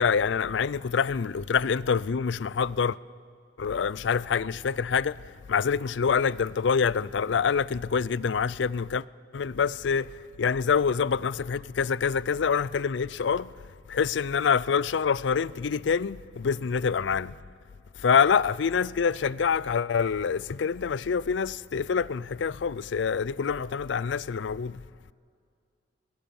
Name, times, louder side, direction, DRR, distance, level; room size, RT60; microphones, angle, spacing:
voice 1, 0.0-3.0 3.6-5.2 5.5-9.0 9.3-10.1 10.4-13.5 13.9-17.3 18.0-24.8, left 6 dB, 75° left, 0.4 m, -26 dB
22.0 x 21.0 x 7.1 m
head